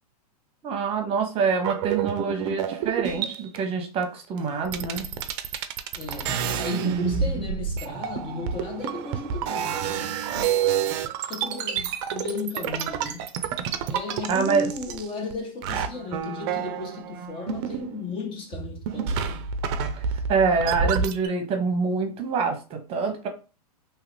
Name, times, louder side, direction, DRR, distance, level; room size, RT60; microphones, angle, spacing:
voice 1, 0.6-5.1 14.3-14.7 20.3-23.3, right 5 dB, 30° right, 0.9 m, -25 dB
sound 1, 1.5-3.6 4.4-4.5 4.6-15.3 15.6-18.2 18.5-21.3, right 7 dB, 45° right, 0.5 m, -29 dB
voice 2, 5.9-10.5 11.2-13.3 13.9-19.5, left 3 dB, 25° left, 0.6 m, -35 dB
2.8 x 2.4 x 3.3 m
hypercardioid pair, 120°, 20 cm